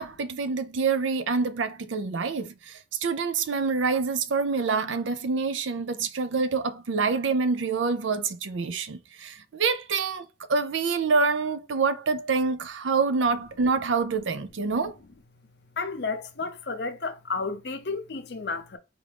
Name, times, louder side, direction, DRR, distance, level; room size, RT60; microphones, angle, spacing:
voice 1, 0.0-10.2 10.5-15.0, right 4 dB, 80° right, 0.5 m, -26 dB
voice 2, 15.8-18.8, left 4 dB, 60° left, 0.7 m, -32 dB
4.6 x 2.5 x 3.4 m
head